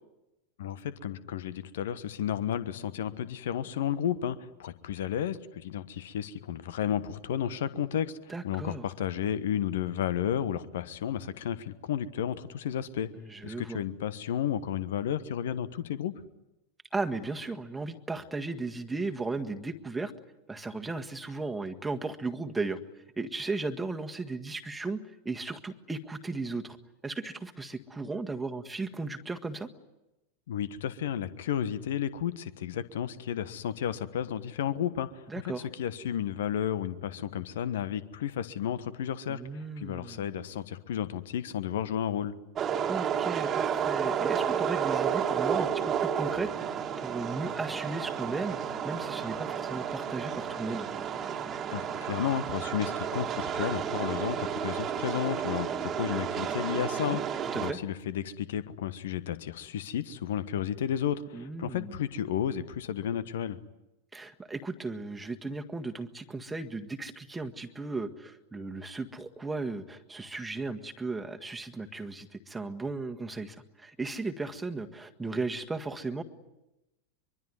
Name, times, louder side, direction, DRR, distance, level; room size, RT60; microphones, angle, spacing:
voice 1, 0.6-13.1 13.4-16.1 30.5-35.3 35.7-42.3 51.7-63.6, left 9 dB, 60° left, 15 dB, 1.3 m, -32 dB
voice 2, 8.3-8.9 13.2-13.8 16.9-20.1 20.5-22.8 23.2-25.0 25.3-26.8 27.0-29.7 35.3-35.7 39.3-40.3 42.9-48.6 48.8-50.9 57.1-57.2 57.5-57.8 61.3-62.0 64.1-76.2, right 3 dB, 10° right, 5 dB, 1.7 m, -36 dB
sound 1, 42.6-57.7, right 8 dB, 25° right, 1.9 m, -31 dB
24.0 x 23.5 x 9.6 m, 0.94 s
figure-of-eight pair, 90°, 0 cm